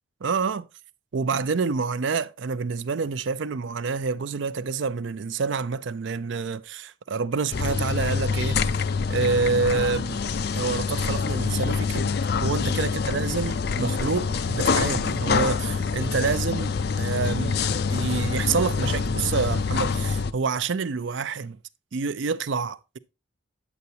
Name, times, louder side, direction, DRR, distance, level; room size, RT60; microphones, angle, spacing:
voice 1, 0.2-0.6 1.1-8.6 9.1-10.2 10.5-12.1 12.4-17.6 17.9-21.6 21.9-23.0, right 5 dB, 65° right, 0.5 m, -27 dB
sound 1, 7.5-20.3, left 5 dB, 50° left, 0.4 m, -26 dB
9.3 x 8.1 x 2.8 m
head